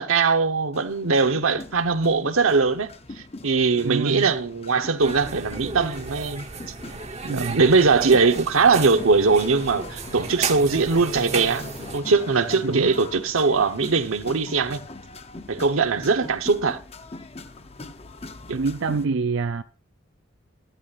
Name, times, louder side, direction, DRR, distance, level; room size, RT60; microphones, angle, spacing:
voice 1, 0.0-2.9 3.2-6.4 7.3-11.6 11.9-14.8 15.5-16.8 18.5-18.6, right 4 dB, 90° right, 1.0 m, -21 dB
sound 1, 0.7-19.1, left 2 dB, 30° left, 0.7 m, -41 dB
voice 2, 3.8-4.3 7.2-7.6 12.6-13.0 18.5-19.6, right 4 dB, 60° right, 0.4 m, -26 dB
sound 2, 5.0-12.0, right 4 dB, 30° right, 1.0 m, -34 dB
14.5 x 12.5 x 2.5 m
head